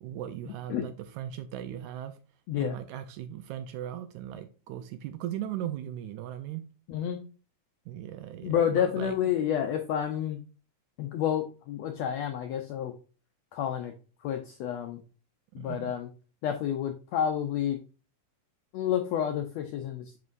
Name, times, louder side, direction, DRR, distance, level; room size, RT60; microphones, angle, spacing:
voice 1, 0.0-2.2 2.6-6.6 7.9-9.2 15.5-15.9, right 11 dB, 80° right, 1.8 m, -38 dB
voice 2, 6.9-7.2 8.4-10.4 11.0-12.9 13.5-13.9 14.2-15.0 15.5-16.1 16.4-17.8 18.7-20.2, left 9 dB, 85° left, 1.5 m, -29 dB
9.4 x 4.4 x 2.5 m
omnidirectional pair, 3.7 m